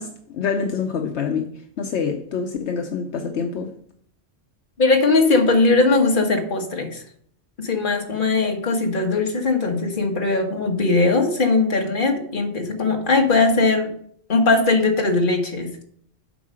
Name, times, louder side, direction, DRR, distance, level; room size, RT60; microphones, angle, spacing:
voice 1, 0.0-1.5 1.8-3.7, left 6 dB, 75° left, 4 dB, 1.0 m, -26 dB
voice 2, 4.8-7.0 7.6-13.9 14.3-15.7, left 3 dB, 45° left, 3 dB, 1.4 m, -19 dB
7.8 x 4.7 x 6.2 m, 0.62 s
omnidirectional pair, 1.2 m